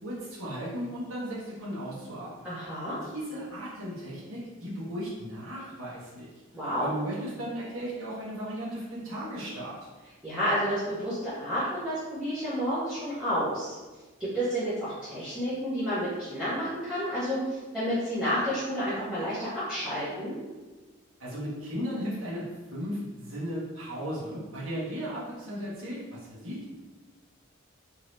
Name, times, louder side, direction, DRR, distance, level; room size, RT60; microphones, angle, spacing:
voice 1, 0.0-2.5 3.0-6.3 6.8-9.8 21.2-26.6, equal, 75° right, -7 dB, 1.2 m, -36 dB
voice 2, 2.4-3.0 6.5-6.9 10.2-13.8 14.3-20.3, equal, 5° right, -14 dB, 0.8 m, -30 dB
2.8 x 2.7 x 3.1 m, 1.2 s
head